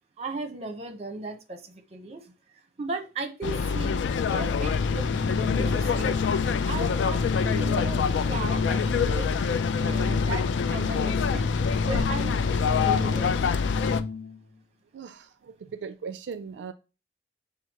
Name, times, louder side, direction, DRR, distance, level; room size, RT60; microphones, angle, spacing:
voice 1, 0.2-2.2 2.8-4.0 4.3-6.2 6.6-9.3 9.7-11.4 11.9-13.4, right 3 dB, 35° right, 6 dB, 0.8 m, -36 dB
sound 1, 3.4-14.0, left 6 dB, 90° left, 0.3 m, -26 dB
Organ, 4.1-14.4, left 3 dB, 40° left, 0.6 m, -31 dB
voice 2, 14.9-16.7, right 6 dB, 80° right, 10 dB, 0.3 m, -38 dB
6.9 x 2.5 x 2.9 m, 0.30 s
head